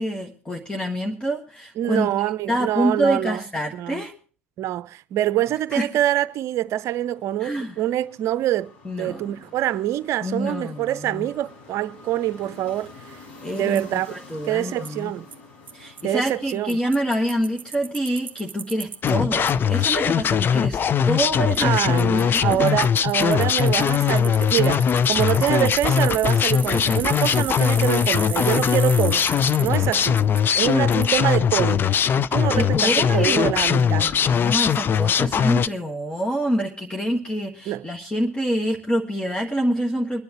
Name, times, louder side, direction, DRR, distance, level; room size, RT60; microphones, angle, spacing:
voice 1, 0.0-2.1 2.5-4.1 5.7-5.9 7.4-7.7 8.8-9.2 10.2-11.3 13.4-15.1 15.7-20.8 21.0-21.8 22.1-22.8 32.5-40.2, equal, 15° left, 1.7 m, -26 dB
voice 2, 1.8-3.4 3.7-4.0 4.6-8.7 9.0-13.2 13.5-14.1 14.4-15.3 16.0-16.8 21.6-24.8 25.1-29.2 29.6-30.2 30.6-31.9 32.2-34.1 37.7-37.9, right 13 dB, 50° right, 0.7 m, -25 dB
sound 1, 5.9-20.1, left 3 dB, 65° left, 5.0 m, -49 dB
Bicycle, 13.8-13.9 14.9-15.0 15.3-15.4 15.7-15.8 16.0-16.1 16.3-19.1 19.5-19.6 21.5-21.6 22.0-30.4 30.9-31.1, right 7 dB, 30° right, 1.6 m, -35 dB
sound 2, 19.0-35.7, left 7 dB, 35° left, 0.6 m, -20 dB
24.5 x 10.5 x 3.1 m
hypercardioid pair, 65°, 6 cm